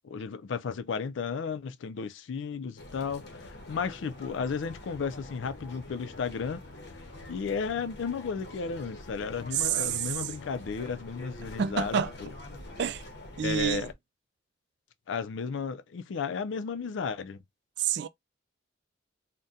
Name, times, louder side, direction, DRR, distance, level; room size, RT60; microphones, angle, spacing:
voice 1, 0.0-6.6 7.3-12.3 13.4-13.9 15.1-17.4, left 5 dB, 80° left, 0.4 m, -34 dB
sound 1, 2.8-13.9, left 2 dB, 60° left, 0.8 m, -45 dB
voice 2, 9.5-10.3 11.6-12.1 12.8-13.0 13.4-13.9 17.8-18.1, right 8 dB, 60° right, 0.3 m, -28 dB
2.7 x 2.1 x 3.6 m
head